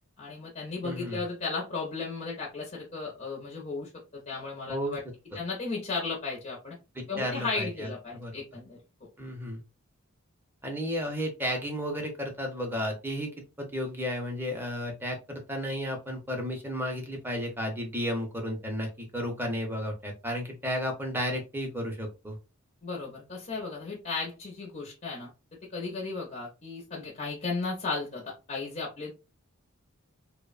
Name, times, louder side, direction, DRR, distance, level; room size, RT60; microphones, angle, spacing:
voice 1, 0.2-5.0 5.3-6.8 7.1-8.8 22.8-25.3 25.7-29.1, left 4 dB, 35° left, -1 dB, 0.5 m, -35 dB
voice 2, 0.8-1.2 4.7-4.9 5.3-5.4 7.0-8.3 9.2-9.6 10.6-13.3 13.6-22.4, equal, 10° right, 2 dB, 0.6 m, -33 dB
2.9 x 2.0 x 2.3 m, 0.29 s
head